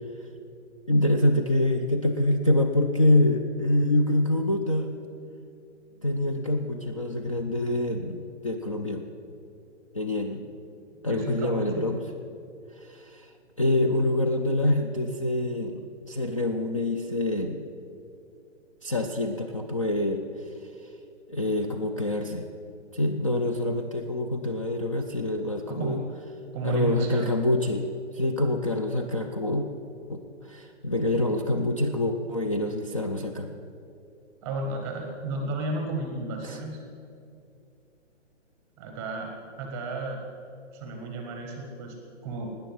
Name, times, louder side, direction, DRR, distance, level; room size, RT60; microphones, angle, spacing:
voice 1, 0.9-4.9 6.0-9.0 9.9-10.5 11.0-12.0 12.8-13.3 13.6-17.6 18.8-20.2 21.3-22.5 22.9-26.0 26.6-27.9 28.1-29.7 30.1-33.5 36.4-36.6, left 1 dB, 30° left, 4 dB, 0.5 m, -26 dB
voice 2, 11.1-11.9 23.3-23.5 25.7-26.0 26.5-27.3 34.4-36.8 38.8-39.3 39.6-40.2 40.7-42.0 42.2-42.5, right 3 dB, 5° right, 2 dB, 0.8 m, -32 dB
17.0 x 9.8 x 7.7 m, 2.6 s
hypercardioid pair, 170°, 36 cm